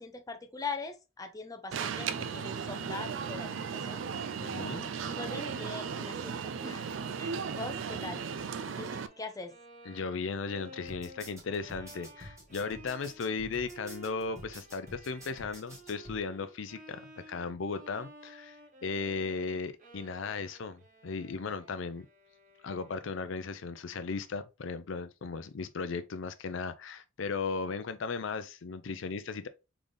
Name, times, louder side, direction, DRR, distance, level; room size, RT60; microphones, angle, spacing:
voice 1, 0.0-4.0 5.1-8.2 8.7-9.6, left 3 dB, 20° left, 0.6 m, -42 dB
Alarm, 1.7-9.1, right 6 dB, 70° right, 0.4 m, -36 dB
voice 2, 4.4-4.9 9.9-22.1 22.6-29.5, left 4 dB, 70° left, 0.5 m, -36 dB
Bowed string instrument, 7.4-23.4, right 1 dB, 40° right, 1.5 m, -54 dB
sound 1, 10.9-16.2, equal, 15° right, 1.8 m, -48 dB
3.9 x 3.7 x 3.4 m
head